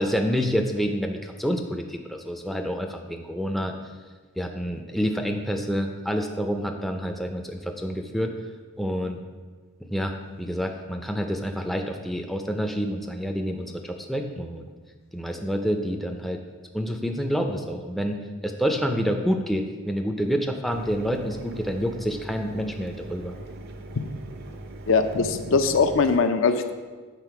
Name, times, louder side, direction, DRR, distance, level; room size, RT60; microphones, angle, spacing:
voice 1, 0.0-3.7 4.4-8.3 8.8-9.2 9.9-10.1 10.4-14.7 15.1-16.4 16.7-18.2 18.4-23.3, equal, ahead, 3 dB, 0.4 m, -28 dB
Mechanisms, 20.7-26.2, right 2 dB, 50° right, 0.5 m, -41 dB
voice 2, 24.9-26.7, left 4 dB, 60° left, 9 dB, 0.5 m, -21 dB
8.2 x 4.1 x 5.8 m, 1.4 s
head